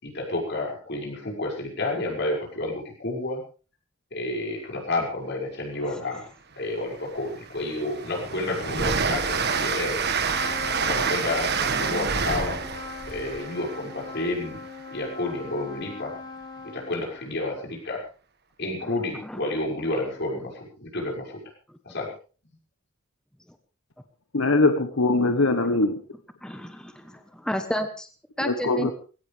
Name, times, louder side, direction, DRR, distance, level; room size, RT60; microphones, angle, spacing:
voice 1, 0.0-3.4 4.1-6.2 6.6-10.0 10.8-12.6 13.1-14.6 14.9-16.1 16.7-18.0 18.6-21.4 21.9-22.1, left 2 dB, 55° left, 0 dB, 6.1 m, -30 dB
Train, 6.6-6.7 7.2-14.9, right 5 dB, 55° right, 1.7 m, -28 dB
Trumpet, 10.3-17.2, left 4 dB, 20° left, 2.9 m, -40 dB
voice 2, 24.3-26.0 28.4-28.9, left 2 dB, 90° left, 8 dB, 1.3 m, -22 dB
voice 3, 26.4-28.1 28.4-28.9, equal, 5° left, 7 dB, 1.2 m, -32 dB
20.0 x 17.0 x 3.5 m, 0.37 s
head